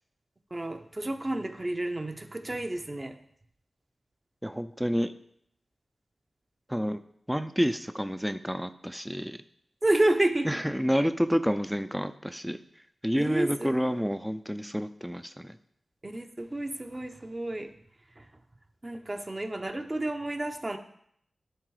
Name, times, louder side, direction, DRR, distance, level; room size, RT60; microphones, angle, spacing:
voice 1, 0.5-3.1 9.8-10.6 13.2-13.7 16.0-17.7 18.2-18.3 18.8-20.8, right 1 dB, 30° right, 7 dB, 0.9 m, -30 dB
voice 2, 4.4-5.1 6.7-7.0 7.3-9.4 10.4-12.6 13.0-15.6, equal, 5° right, 10 dB, 0.5 m, -29 dB
11.5 x 3.9 x 4.8 m, 0.70 s
cardioid pair, 45°, 0 cm